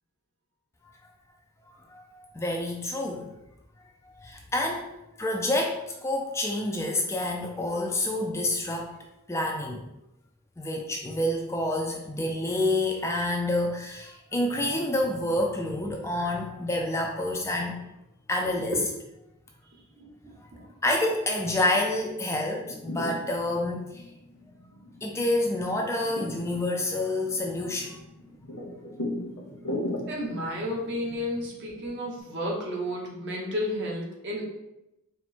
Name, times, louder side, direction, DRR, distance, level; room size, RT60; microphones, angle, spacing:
voice 1, 1.8-3.3 4.0-4.9 5.2-8.9 9.3-9.8 10.6-17.8 18.3-18.8 20.4-20.5 20.8-24.1 25.0-28.0, left 1 dB, 15° left, 1 dB, 0.3 m, -28 dB
voice 2, 20.0-20.7 30.1-34.5, equal, 55° right, -2 dB, 1.0 m, -32 dB
sound 1, 22.6-32.2, left 1 dB, 65° left, 0.9 m, -39 dB
4.3 x 2.1 x 4.2 m, 0.91 s
head